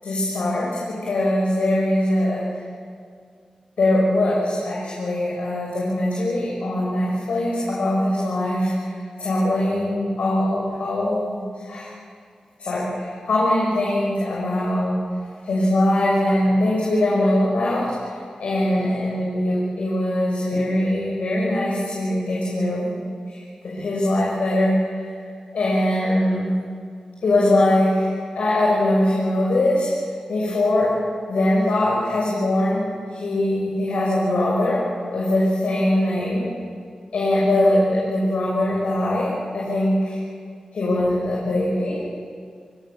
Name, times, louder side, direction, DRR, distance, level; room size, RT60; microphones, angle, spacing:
voice 1, 0.0-2.5 3.8-11.9 12.6-15.0 15.4-17.9 18.4-22.9 23.3-24.8 25.5-26.5 27.2-29.9 30.3-30.9 31.3-32.8 33.1-34.8 35.1-36.5 37.1-40.2 40.7-42.0, left 1 dB, 85° left, -6 dB, 6.9 m, -21 dB
29.0 x 22.5 x 7.3 m, 2.1 s
cardioid pair, 50°, 2 cm